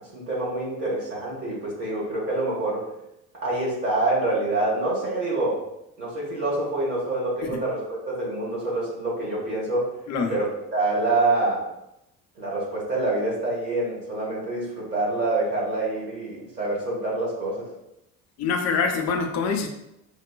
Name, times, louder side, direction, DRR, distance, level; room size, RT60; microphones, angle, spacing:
voice 1, 0.1-2.8 3.4-5.6 6.0-9.9 10.3-11.7 12.4-17.7, right 2 dB, 85° right, -6 dB, 1.1 m, -26 dB
voice 2, 10.1-10.4 18.4-19.7, left 5 dB, 35° left, 4 dB, 0.6 m, -25 dB
4.8 x 2.2 x 2.2 m, 0.85 s
figure-of-eight pair, 60°, 47 cm